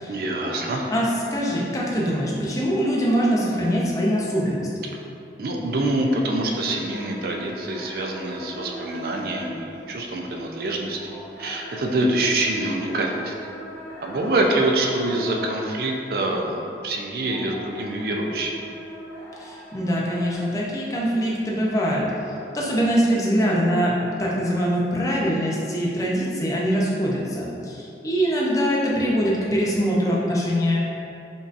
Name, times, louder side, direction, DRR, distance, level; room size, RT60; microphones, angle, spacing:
voice 1, 0.1-0.9 5.4-13.3 14.0-18.6, right 2 dB, 55° right, 0 dB, 0.4 m, -25 dB
voice 2, 0.9-4.7 19.4-22.1 22.5-30.8, equal, 20° left, -5 dB, 0.5 m, -23 dB
sound 1, 6.0-16.6 16.9-20.3, equal, 80° left, 1.2 m, -40 dB
5.2 x 2.7 x 2.5 m, 2.8 s
head